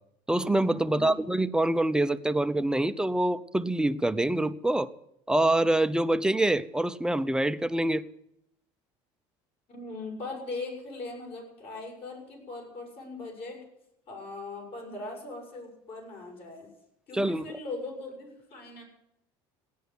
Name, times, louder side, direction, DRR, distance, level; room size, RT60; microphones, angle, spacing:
voice 1, 0.3-4.9 5.3-8.1 17.1-17.6, right 1 dB, 5° right, 0.6 m, -25 dB
voice 2, 0.8-1.3 9.7-13.6 14.1-16.7 17.1-18.8, left 3 dB, 55° left, 7.0 m, -40 dB
17.0 x 10.0 x 8.0 m
cardioid pair, 115°, 12 cm